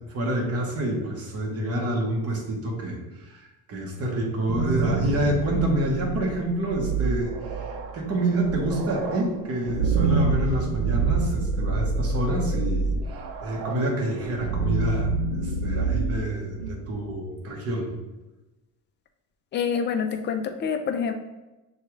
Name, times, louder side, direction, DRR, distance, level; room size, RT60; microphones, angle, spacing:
voice 1, 0.1-7.7 7.9-17.9, right 1 dB, 35° right, 0 dB, 1.1 m, -28 dB
sound 1, 4.2-17.1, right 4 dB, 75° right, 0.6 m, -27 dB
voice 2, 19.5-21.1, left 6 dB, 30° left, 6 dB, 0.4 m, -26 dB
6.5 x 2.4 x 3.1 m, 1.1 s
cardioid pair, 130°, 40 cm